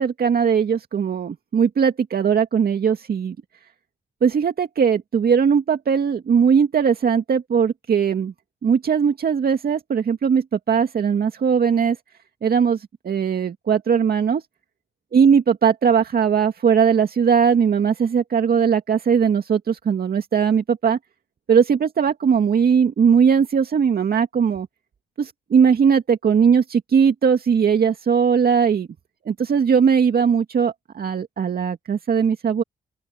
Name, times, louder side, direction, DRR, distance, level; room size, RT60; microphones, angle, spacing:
voice 1, 0.0-3.4 4.2-8.3 8.6-12.0 12.4-12.8 13.0-14.4 15.1-21.0 21.5-24.7 25.2-28.9 29.3-32.6, right 7 dB, 60° right, 2.3 m, -19 dB
open air
supercardioid pair, 50°, 17 cm